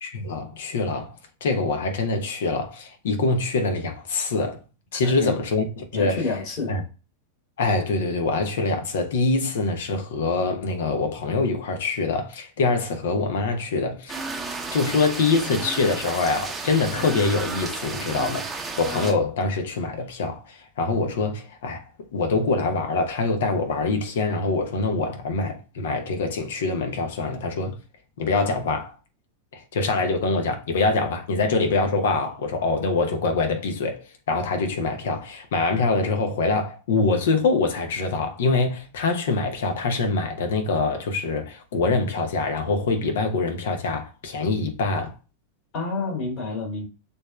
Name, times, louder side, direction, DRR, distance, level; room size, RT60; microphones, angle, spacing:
voice 1, 0.0-4.6 4.9-6.2 6.7-6.8 7.6-14.2 14.7-27.8 28.2-28.9 29.5-45.1, left 3 dB, 60° left, 0.9 m, -24 dB
voice 2, 5.0-5.3 5.9-6.7 45.7-46.9, left 3 dB, 40° left, 2.9 m, -29 dB
sound 1, 14.1-19.1, right 3 dB, 15° right, 0.8 m, -32 dB
6.4 x 3.5 x 2.3 m
figure-of-eight pair, 90°, 0 cm